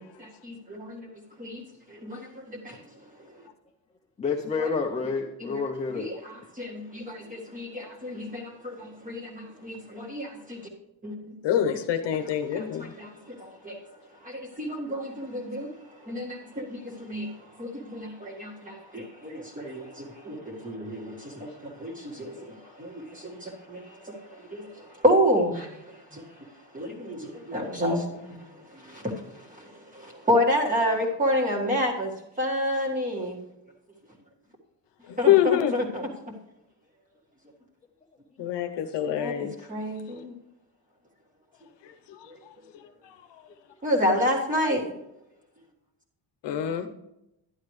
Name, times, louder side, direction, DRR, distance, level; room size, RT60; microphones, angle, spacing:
voice 1, 0.2-1.1 1.4-1.6 1.9-2.8 4.6-4.7 5.4-5.6 5.9-10.7 11.0-11.2 11.5-11.6 12.5-13.8 14.2-15.7 16.0-26.5 26.7-32.1 32.4-33.4 35.2-36.1 39.2-40.3 43.8-44.8 46.6-46.8, equal, 15° right, -1 dB, 1.7 m, -30 dB
voice 2, 4.2-6.1 21.2-21.3 22.6-22.7, left 5 dB, 15° left, 1 dB, 0.5 m, -29 dB
voice 3, 11.4-12.9 35.0-35.7 38.4-39.5 41.8-43.4 46.4-46.9, left 11 dB, 65° left, 8 dB, 0.9 m, -26 dB
11.5 x 11.0 x 3.2 m, 0.88 s
cardioid pair, 165°, 46 cm